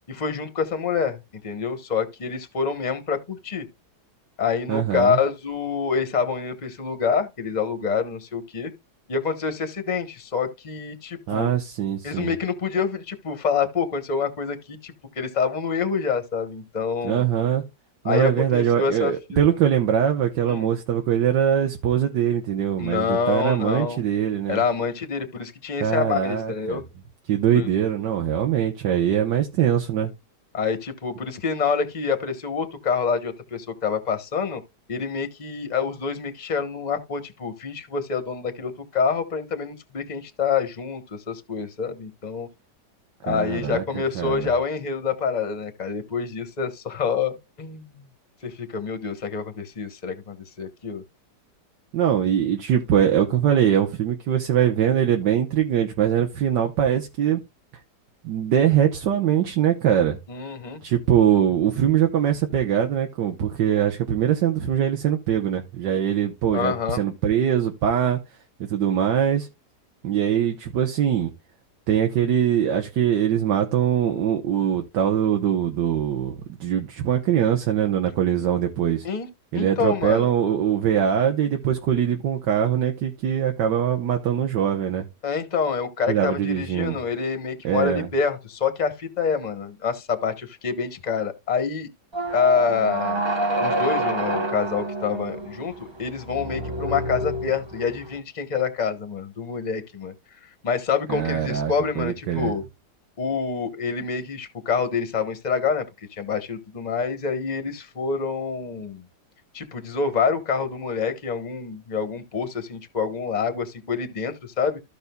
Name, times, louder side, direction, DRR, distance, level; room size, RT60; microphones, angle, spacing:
voice 1, 0.1-1.2 1.4-3.7 4.4-8.7 9.1-11.5 12.0-17.2 18.0-19.4 20.5-20.7 22.8-24.0 24.5-26.8 27.5-27.6 30.5-34.6 34.9-42.5 43.2-48.1 48.4-51.0 60.3-60.8 66.5-67.0 79.0-79.3 79.5-80.3 85.2-91.9 92.3-93.2 93.6-100.1 100.6-102.6 103.2-105.8 106.1-109.1 109.5-114.8, left 6 dB, 30° left, 1.0 m, -26 dB
voice 2, 4.7-5.2 11.3-12.3 17.0-17.6 18.0-24.6 25.8-26.8 27.3-30.1 43.3-43.8 44.1-44.5 51.9-57.4 58.2-60.2 60.8-68.2 68.7-69.5 70.0-71.3 71.9-79.0 79.5-85.1 86.1-87.0 87.6-88.1 101.1-102.5, right 9 dB, 85° right, 1.6 m, -22 dB
sound 1, 92.1-98.1, right 1 dB, 40° right, 0.4 m, -28 dB
14.5 x 5.4 x 2.2 m
omnidirectional pair, 1.8 m